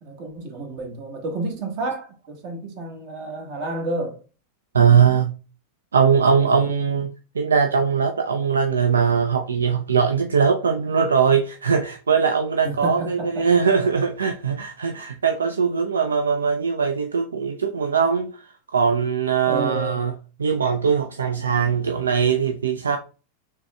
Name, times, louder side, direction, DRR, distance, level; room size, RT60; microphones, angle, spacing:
voice 1, 0.0-4.2 6.3-6.6 12.6-13.5 19.5-20.0, right 2 dB, 45° right, 1.3 m, -30 dB
voice 2, 4.7-5.3 5.9-7.1 7.4-18.3 18.7-20.1 20.4-23.0, right 6 dB, 70° right, 0.3 m, -20 dB
5.8 x 3.1 x 2.2 m
figure-of-eight pair, 90°, 0 cm